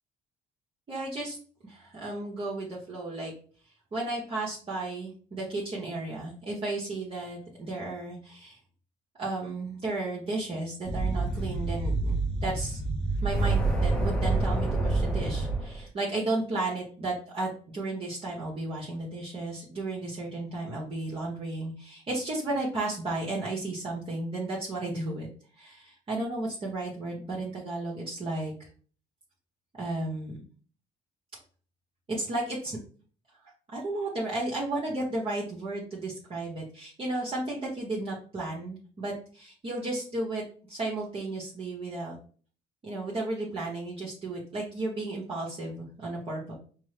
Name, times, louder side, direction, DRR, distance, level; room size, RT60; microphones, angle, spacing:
voice 1, 0.9-1.4 1.6-3.3 3.9-8.6 9.2-12.8 13.2-25.3 25.5-28.7 29.8-30.4 32.1-32.8 33.7-40.4 40.7-42.1 42.8-46.5, right 2 dB, 35° right, -5 dB, 1.1 m, -33 dB
sound 1, 10.9-15.8, right 2 dB, 5° left, 0.8 m, -27 dB
5.2 x 2.1 x 3.2 m, 0.43 s
cardioid pair, 110°, 17 cm